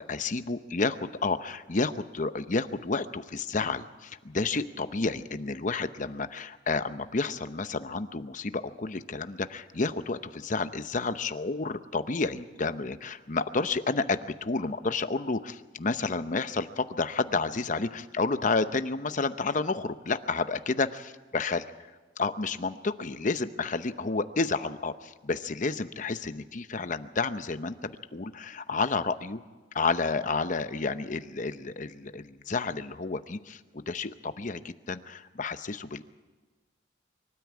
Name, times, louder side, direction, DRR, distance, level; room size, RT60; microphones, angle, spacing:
voice 1, 0.0-21.6 22.2-29.4 29.7-36.0, left 3 dB, 40° left, 11 dB, 0.8 m, -30 dB
24.5 x 13.0 x 8.3 m, 1.3 s
head